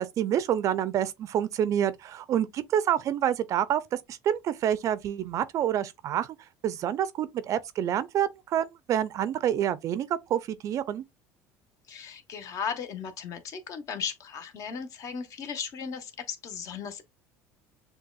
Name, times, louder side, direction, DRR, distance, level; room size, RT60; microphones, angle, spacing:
voice 1, 0.0-3.8 4.1-6.3 6.6-11.0, right 10 dB, 50° right, 0.4 m, -27 dB
voice 2, 11.9-17.0, left 7 dB, 50° left, 0.9 m, -36 dB
6.6 x 2.3 x 2.3 m
supercardioid pair, 105°, 7 cm